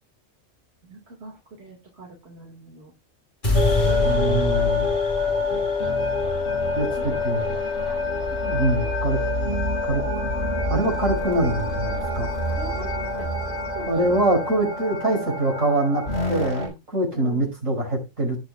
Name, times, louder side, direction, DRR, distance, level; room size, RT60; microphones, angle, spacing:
voice 1, 0.9-2.9 3.8-5.0 5.5-5.9 6.4-7.2 7.5-7.6 7.8-8.3 12.6-14.2 15.7-15.8 17.1-17.5, right 2 dB, 55° right, 1 dB, 2.4 m, -40 dB
sound 1, 3.4-9.6, left 1 dB, 40° left, 5.0 m, -29 dB
sound 2, 3.5-16.7, left 3 dB, 65° left, 4.5 m, -26 dB
voice 2, 4.0-4.9 6.8-7.6 8.4-9.2 9.9-10.0 10.7-12.3 13.9-18.4, right 1 dB, 80° right, -1 dB, 6.0 m, -24 dB
18.0 x 6.7 x 2.4 m, 0.24 s
omnidirectional pair, 1.3 m